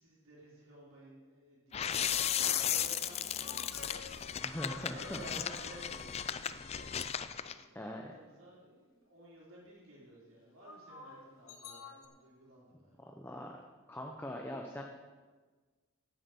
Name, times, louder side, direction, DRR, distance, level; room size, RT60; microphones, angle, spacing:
voice 1, 0.0-4.2 4.7-13.0, right 1 dB, 70° right, -7 dB, 3.8 m, -55 dB
sound 1, 1.7-7.5, left 9 dB, 30° left, 0.3 m, -35 dB
sound 2, 2.0-2.9 3.4-5.9 10.6-12.1, left 5 dB, 65° left, 1.1 m, -51 dB
voice 2, 4.4-5.2 7.7-8.0 13.0-13.5 13.9-14.8, left 1 dB, 10° left, 1 dB, 0.7 m, -41 dB
9.8 x 8.3 x 7.0 m, 1.4 s
head